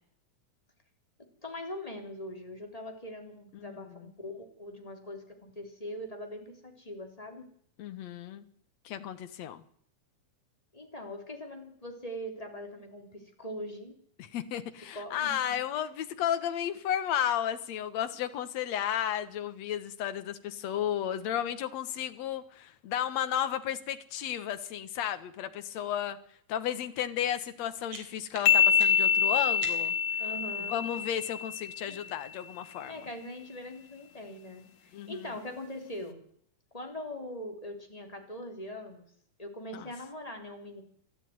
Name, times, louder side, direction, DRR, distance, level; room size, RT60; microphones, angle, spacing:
voice 1, 1.4-7.5 10.7-14.0 14.9-15.6 30.2-30.8 31.9-32.0 32.9-36.2 36.7-39.1 39.4-40.8, left 1 dB, 10° left, 3 dB, 3.5 m, -42 dB
voice 2, 7.8-8.5 8.9-9.6 14.3-26.2 26.5-29.9 30.7-32.9 34.9-35.3 39.7-39.9, left 10 dB, 65° left, 10 dB, 2.5 m, -33 dB
sound 1, 27.4-30.1, right 3 dB, 60° right, 4.7 m, -47 dB
sound 2, 28.5-32.0, left 7 dB, 90° left, 3.0 m, -26 dB
27.5 x 12.5 x 9.5 m, 0.65 s
omnidirectional pair, 3.5 m